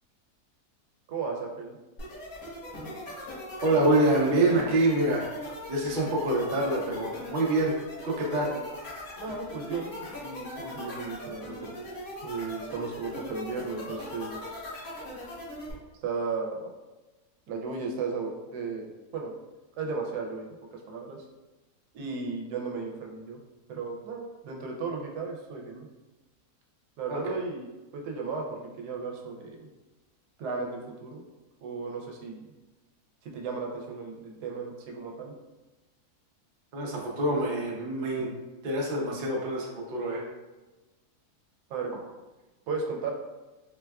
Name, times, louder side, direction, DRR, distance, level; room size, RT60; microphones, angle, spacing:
voice 1, 1.1-1.8 8.5-8.7 9.2-11.8 12.2-14.7 16.0-16.7 17.5-19.3 19.8-21.2 21.9-23.4 23.7-25.9 27.0-29.7 30.4-31.2 31.6-32.5 33.2-35.3 41.7-41.9 42.7-43.1, right 4 dB, 85° right, 1 dB, 1.1 m, -35 dB
sound 1, 2.0-15.7, left 1 dB, 65° left, 1.5 m, -40 dB
voice 2, 3.6-5.3 5.7-7.7 8.0-8.5 27.1-27.3 36.7-38.3 38.6-40.2, right 1 dB, 55° right, -3 dB, 0.5 m, -26 dB
4.2 x 2.3 x 2.2 m, 1.1 s
omnidirectional pair, 1.7 m